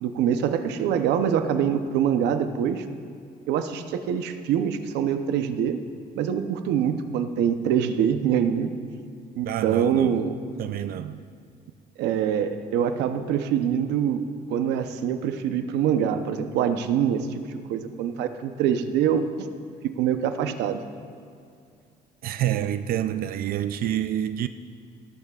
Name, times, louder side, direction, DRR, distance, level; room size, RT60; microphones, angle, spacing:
voice 1, 0.0-2.9 3.5-5.8 6.2-8.7 9.3-10.4 12.0-14.2 14.5-19.5 20.0-20.8, right 8 dB, 85° right, 0.8 m, -24 dB
voice 2, 9.4-10.2 10.6-11.2 22.2-24.5, right 11 dB, 60° right, 0.4 m, -28 dB
18.0 x 14.0 x 2.4 m
cardioid pair, 110°, 17 cm